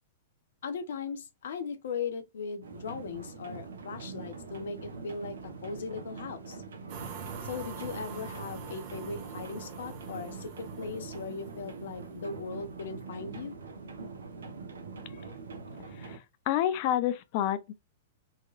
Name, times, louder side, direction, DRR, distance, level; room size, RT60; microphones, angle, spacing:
voice 1, 0.6-6.6 7.4-13.5, left 5 dB, 70° left, 0.9 m, -38 dB
sound 1, 2.6-16.2, right 4 dB, 80° right, 1.0 m, -43 dB
sound 2, 6.9-13.1, right 6 dB, 50° right, 1.1 m, -45 dB
voice 2, 15.9-17.7, left 11 dB, 50° left, 0.5 m, -29 dB
4.1 x 3.1 x 2.5 m
hypercardioid pair, 110°, 0 cm